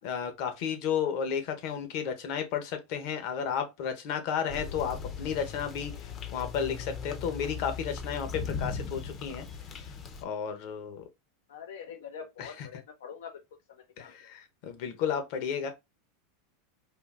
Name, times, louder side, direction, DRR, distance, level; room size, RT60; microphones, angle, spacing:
voice 1, 0.0-9.4 9.7-9.9 10.2-11.0 12.4-12.5 14.0-15.7, left 7 dB, 55° left, 0.8 m, -33 dB
sound 1, 4.5-10.2, left 5 dB, 30° left, 0.6 m, -38 dB
voice 2, 11.5-13.3 13.7-14.3, left 7 dB, 90° left, 0.5 m, -45 dB
3.7 x 2.4 x 2.4 m
supercardioid pair, 130°, 0 cm